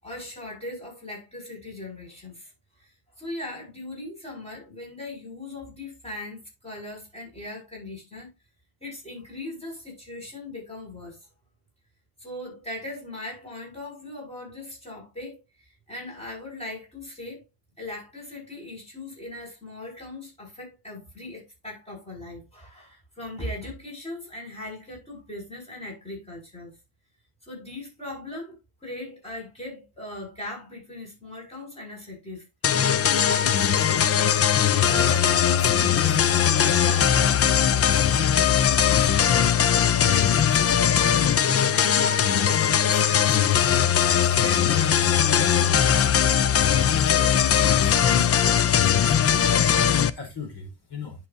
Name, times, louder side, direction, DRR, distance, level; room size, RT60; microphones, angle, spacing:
voice 1, 0.0-2.5 2.8-8.3 8.8-11.3 12.2-17.4 17.8-26.8 27.4-32.5 33.0-38.0 39.0-40.9 41.5-43.4 44.1-46.2 47.0-48.8, left 2 dB, 15° left, 6.1 m, -39 dB
sound 1, 32.6-50.1, left 9 dB, 35° left, 0.4 m, -20 dB
voice 2, 46.6-47.1 49.3-51.3, left 5 dB, 60° left, 4.2 m, -40 dB
10.5 x 7.1 x 2.7 m
cardioid pair, 160°, 44 cm